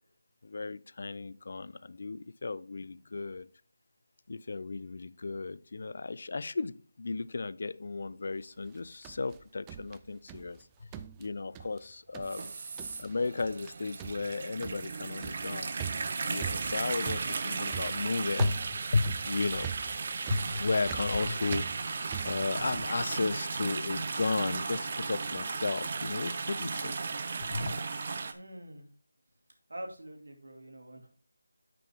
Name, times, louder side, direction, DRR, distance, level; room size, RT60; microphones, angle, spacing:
voice 1, 0.4-3.5 4.3-10.7 11.2-12.5 13.0-15.8 16.3-19.8 20.3-27.0 27.5-27.8, left 3 dB, 50° left, 0.5 m, -34 dB
sound 1, 8.7-10.6 10.9-11.9 12.1-12.5 12.8-13.1 13.4-13.7 14.0-23.0, right 9 dB, 10° right, 0.3 m, -43 dB
sound 2, 12.2-28.3, right 4 dB, 35° right, 0.7 m, -35 dB
voice 2, 28.3-28.9 29.7-31.1, right 1 dB, 75° right, 2.5 m, -45 dB
8.8 x 6.1 x 3.5 m
figure-of-eight pair, 170°, 0 cm